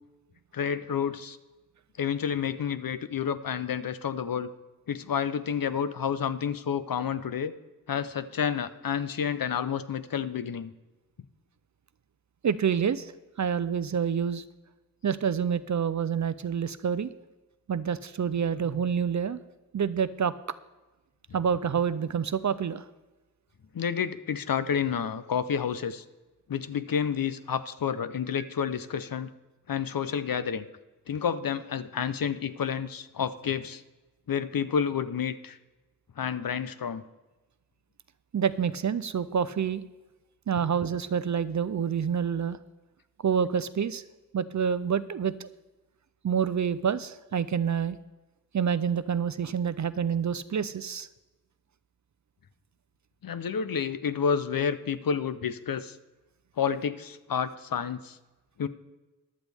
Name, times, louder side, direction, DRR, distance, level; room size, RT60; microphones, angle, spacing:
voice 1, 0.5-1.4 2.0-4.5 4.9-7.5 7.9-10.7 23.7-26.0 26.5-29.3 29.7-30.7 31.1-33.8 34.3-35.6 36.2-37.0 53.2-56.0 56.6-58.2 58.6-58.7, left 7 dB, 75° left, 14 dB, 0.7 m, -30 dB
voice 2, 12.4-13.1 13.4-14.4 15.0-17.1 17.7-19.4 19.7-20.3 21.3-22.8 38.3-39.8 40.5-42.6 43.2-44.0 44.3-45.5 46.2-48.0 48.5-51.1, right 7 dB, 55° right, 15 dB, 0.5 m, -27 dB
14.5 x 11.5 x 3.5 m, 1.1 s
wide cardioid pair, 75°, 35 cm